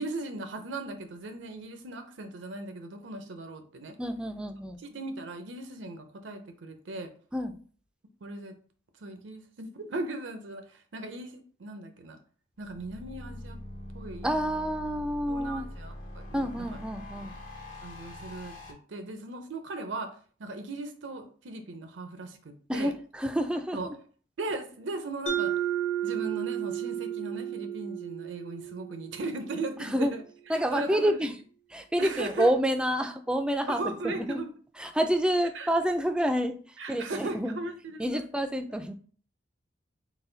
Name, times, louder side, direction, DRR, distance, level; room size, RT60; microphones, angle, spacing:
voice 1, 0.0-4.0 4.8-7.1 8.2-8.6 9.0-12.2 12.6-13.6 13.9-14.3 15.3-16.8 17.8-20.1 20.4-22.9 23.7-23.9 24.4-25.5 26.0-30.2 30.5-31.3 32.0-32.5 33.7-34.5 35.5-35.7 36.8-38.3, right 2 dB, 80° right, 7 dB, 0.6 m, -38 dB
voice 2, 4.0-4.8 7.3-7.5 14.2-15.7 16.3-17.3 22.7-23.9 29.8-30.1 30.5-31.3 31.7-34.4 34.8-36.6 36.9-37.6 38.0-38.9, equal, 5° right, 7 dB, 0.3 m, -28 dB
sound 1, 12.6-18.7, left 1 dB, 50° left, 1.3 m, -43 dB
Mallet percussion, 25.3-29.8, right 10 dB, 80° left, 0.7 m, -33 dB
4.0 x 2.3 x 3.8 m, 0.43 s
head